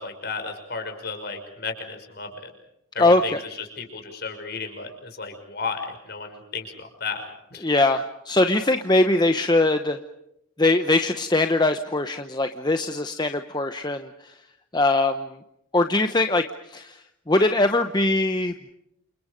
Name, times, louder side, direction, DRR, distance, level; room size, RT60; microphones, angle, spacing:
voice 1, 0.0-2.5 2.9-7.3 7.5-7.7, left 4 dB, 50° left, 5 dB, 5.8 m, -33 dB
voice 2, 3.0-3.4 7.6-10.0 10.6-14.3 14.7-15.4 15.7-17.0 17.3-18.7, left 2 dB, 20° left, 7 dB, 0.9 m, -21 dB
29.0 x 28.0 x 5.2 m, 0.81 s
head